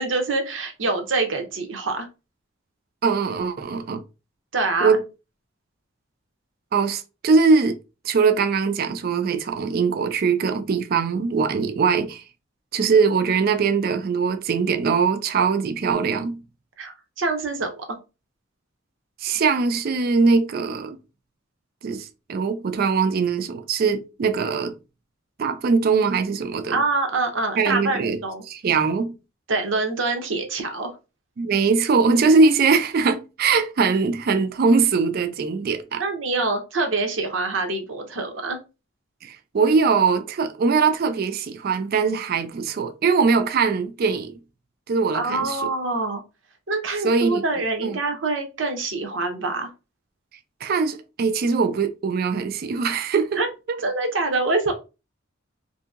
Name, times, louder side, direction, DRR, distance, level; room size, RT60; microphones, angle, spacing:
voice 1, 0.0-2.1 4.5-5.0 16.8-17.8 26.7-28.4 29.5-30.9 36.0-38.6 45.1-46.2 46.7-49.7 53.4-53.5 53.8-54.7, right 3 dB, 70° right, 0.7 m, -25 dB
voice 2, 3.0-4.0 4.8-5.0 6.7-7.8 8.0-12.2 12.7-16.4 19.2-21.0 21.8-24.8 25.4-26.8 27.6-28.2 28.5-29.2 31.4-36.0 39.2-44.4 44.9-45.6 47.0-48.0 50.6-53.4 53.7-53.8, right 5 dB, 50° right, 0.3 m, -21 dB
2.7 x 2.6 x 2.4 m
head